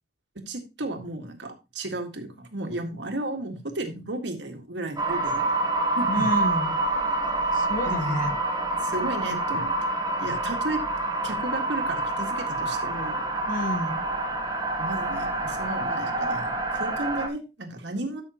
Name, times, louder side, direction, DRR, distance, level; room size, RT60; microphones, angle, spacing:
voice 1, 0.4-5.7 6.0-6.3 7.9-8.3 8.8-9.7 10.2-10.8 11.2-13.3 14.8-18.2, right 2 dB, 80° right, 5 dB, 1.8 m, -34 dB
sound 1, 5.0-17.3, right 2 dB, 25° right, 1.2 m, -27 dB
voice 2, 6.1-6.8 7.5-8.4 13.5-14.0, left 1 dB, 45° left, 9 dB, 1.2 m, -29 dB
12.5 x 6.3 x 2.9 m, 0.27 s
head